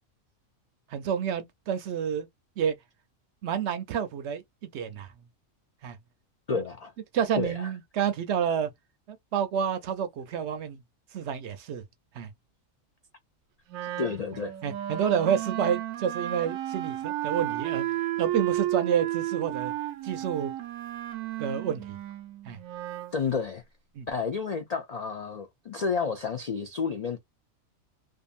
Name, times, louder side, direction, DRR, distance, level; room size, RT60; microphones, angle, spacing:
voice 1, 0.9-2.3 2.6-2.8 3.4-5.1 5.8-6.0 7.1-8.7 9.1-10.8 11.1-11.8 12.1-12.3 14.6-17.9 18.2-19.7 20.0-20.5 21.4-22.0 22.5-22.6 24.0-24.1, right 8 dB, 65° right, 0.8 m, -29 dB
voice 2, 6.5-6.9 7.4-7.7 14.0-14.5 23.1-23.6 24.1-27.2, left 5 dB, 85° left, 0.3 m, -30 dB
Wind instrument woodwind instrument, 13.7-23.2, right 14 dB, 90° right, 1.0 m, -33 dB
2.6 x 2.4 x 2.4 m
omnidirectional pair, 1.4 m